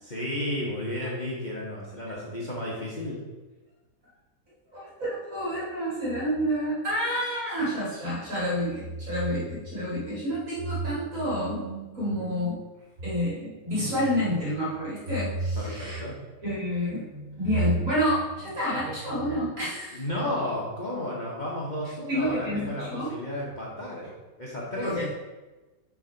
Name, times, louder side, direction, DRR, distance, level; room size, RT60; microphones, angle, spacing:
voice 1, 0.0-3.2 15.5-16.2 19.9-24.1 24.4-25.0, left 1 dB, 30° left, -5 dB, 0.9 m, -33 dB
voice 2, 4.7-12.6 13.0-16.0 16.4-20.0 22.1-23.1 24.8-25.1, equal, 50° right, -7 dB, 2.5 m, -28 dB
6.3 x 3.7 x 4.4 m, 1.2 s
omnidirectional pair, 1.9 m